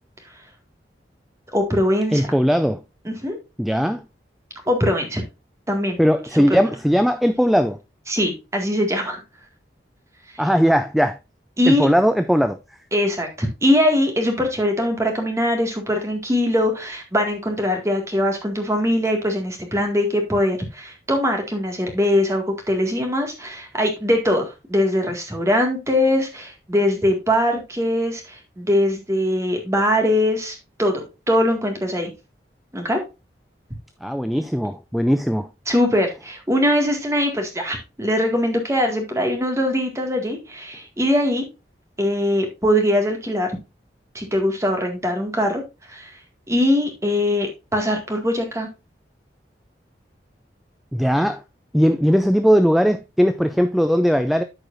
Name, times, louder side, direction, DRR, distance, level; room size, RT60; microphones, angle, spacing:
voice 1, 1.5-2.3 3.1-3.4 4.7-5.2 5.7-6.0 6.3-6.6 8.1-9.2 11.6-11.9 12.9-32.1 32.7-33.0 35.7-41.4 42.0-43.5 44.1-45.6 45.9-46.1 46.5-48.7, left 1 dB, 15° right, 1.9 m, -21 dB
voice 2, 2.1-2.8 3.6-4.0 6.0-7.8 10.4-11.2 11.7-12.6 34.0-35.5 50.9-51.4 51.7-54.4, equal, ahead, 0.4 m, -18 dB
13.5 x 4.8 x 2.5 m
head